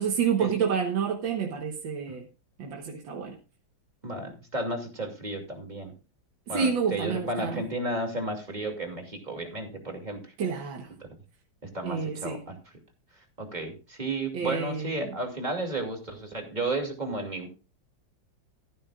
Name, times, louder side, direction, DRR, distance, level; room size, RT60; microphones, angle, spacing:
voice 1, 0.0-2.3 2.6-3.4 6.5-7.6 10.4-10.9 11.8-12.4 14.3-14.9, right 6 dB, 75° right, 1.9 m, -29 dB
voice 2, 4.0-5.9 6.5-10.3 11.0-11.1 11.7-12.7 13.1-17.5, right 2 dB, 20° right, 2.6 m, -33 dB
14.0 x 12.0 x 2.4 m
omnidirectional pair, 2.1 m